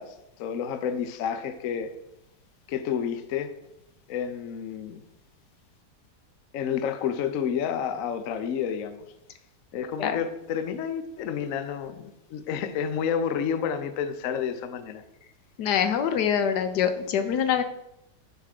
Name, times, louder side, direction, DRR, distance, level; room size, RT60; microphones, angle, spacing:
voice 1, 0.0-1.9 2.7-3.5 4.1-5.0 6.5-9.0 9.7-15.0, left 7 dB, 60° left, 0.9 m, -30 dB
voice 2, 15.6-17.6, left 8 dB, 75° left, 1.3 m, -24 dB
9.3 x 3.6 x 6.5 m
omnidirectional pair, 1.8 m